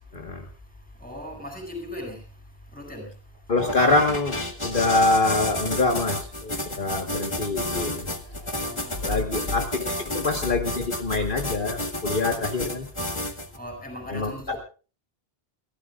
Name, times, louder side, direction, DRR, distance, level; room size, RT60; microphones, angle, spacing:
voice 1, 0.1-0.5 3.5-8.5 9.0-12.9 14.1-14.6, left 3 dB, 55° left, 3 dB, 1.8 m, -25 dB
voice 2, 1.0-2.2 2.7-3.0 8.6-9.0 13.6-14.6, left 1 dB, 10° left, 2 dB, 8.0 m, -38 dB
sound 1, 3.5-13.6, left 1 dB, 30° left, 1.9 m, -31 dB
29.5 x 14.5 x 2.5 m, 0.36 s
omnidirectional pair, 1.1 m